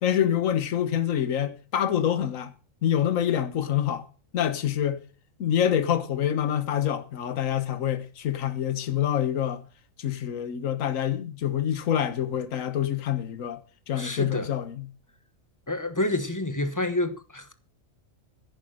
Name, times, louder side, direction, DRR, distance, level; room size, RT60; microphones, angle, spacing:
voice 1, 0.0-2.5 2.8-4.1 4.3-5.0 5.4-9.6 10.0-13.6 13.9-14.9, left 10 dB, 80° left, 1.4 m, -26 dB
voice 2, 13.9-14.5 15.7-17.5, left 2 dB, 15° left, 1.1 m, -28 dB
10.5 x 9.2 x 6.4 m
omnidirectional pair, 1.4 m